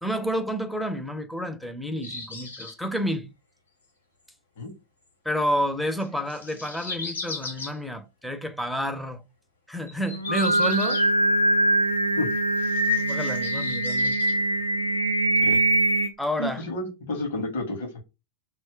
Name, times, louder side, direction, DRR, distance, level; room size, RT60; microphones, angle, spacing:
voice 1, 0.0-3.3 5.2-9.2 9.7-11.0 13.0-14.2 16.2-16.6, equal, ahead, 0.4 m, -29 dB
sound 1, 2.0-2.8 5.8-7.8 9.9-11.6 12.6-14.4 15.2-15.3 15.6-15.7, left 3 dB, 80° left, 0.9 m, -37 dB
Singing, 10.1-16.1, right 1 dB, 90° right, 0.4 m, -23 dB
voice 2, 16.4-18.0, left 2 dB, 55° left, 0.9 m, -30 dB
2.2 x 2.0 x 3.6 m
figure-of-eight pair, 90°, 0 cm